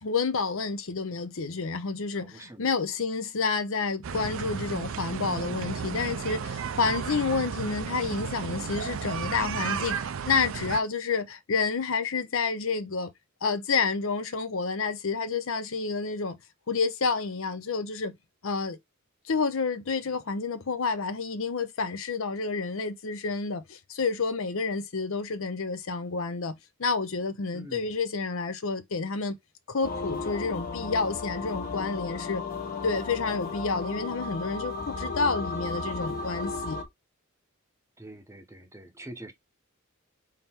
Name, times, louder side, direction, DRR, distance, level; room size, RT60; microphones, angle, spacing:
voice 1, 0.0-13.1 13.4-16.4 16.7-18.1 18.4-18.8 19.3-26.5 26.8-29.4 29.7-32.4 32.8-36.8, left 4 dB, 65° left, 0.7 m, -29 dB
voice 2, 2.1-2.7 27.5-27.9 38.0-39.3, right 1 dB, 15° right, 0.8 m, -45 dB
sound 1, 4.0-10.8, right 6 dB, 65° right, 0.5 m, -33 dB
sound 2, 29.8-36.8, left 3 dB, 40° left, 1.0 m, -34 dB
3.7 x 3.3 x 4.4 m
head